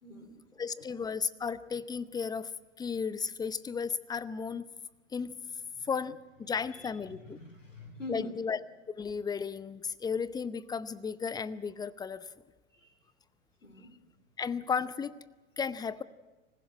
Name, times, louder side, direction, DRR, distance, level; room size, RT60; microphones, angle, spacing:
voice 1, 0.0-0.9 5.8-5.9 6.7-8.4 12.7-13.0 13.6-14.0, left 1 dB, 90° left, 6 dB, 3.3 m, -46 dB
voice 2, 0.6-2.5 2.8-4.7 5.1-5.3 5.8-7.4 8.1-8.6 9.0-12.3 14.4-15.2 15.6-16.0, left 6 dB, 10° left, 17 dB, 0.7 m, -34 dB
25.5 x 15.5 x 8.9 m, 1.2 s
figure-of-eight pair, 95°, 37 cm